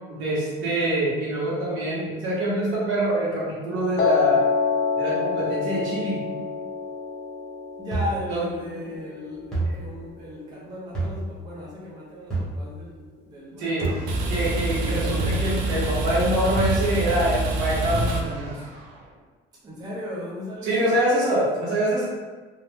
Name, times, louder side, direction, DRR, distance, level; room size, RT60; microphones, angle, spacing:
voice 1, 0.1-4.4 4.9-6.2 8.3-8.4 8.7-8.8 13.6-14.0 14.3-18.6 20.6-22.1, right 1 dB, 70° right, -6 dB, 1.1 m, -25 dB
Piano, 4.0-10.1, left 5 dB, 60° left, 0.4 m, -27 dB
voice 2, 7.8-14.0 14.8-15.2 19.6-20.9, left 1 dB, 20° right, -7 dB, 0.5 m, -36 dB
sound 1, 7.9-8.3 9.5-9.9 10.9-11.4 12.3-12.7 13.8-14.2 15.2-15.6 16.6-17.0 17.9-18.1, right 2 dB, 5° left, 0.9 m, -28 dB
sound 2, 13.8-19.0, right 2 dB, 85° right, 0.6 m, -27 dB
2.7 x 2.1 x 3.3 m, 1.4 s
cardioid pair, 160°, 20 cm